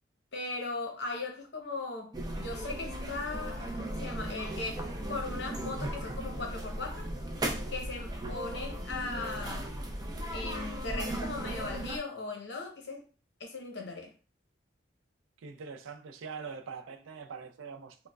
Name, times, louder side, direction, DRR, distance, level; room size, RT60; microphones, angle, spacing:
voice 1, 0.3-7.1 7.7-9.7 10.3-13.1 13.4-14.1, left 3 dB, 55° left, 0.8 m, -38 dB
sound 1, 2.1-12.0, right 1 dB, 20° right, 0.4 m, -37 dB
voice 2, 15.4-18.1, right 5 dB, 80° right, 0.4 m, -43 dB
4.5 x 2.1 x 2.3 m
head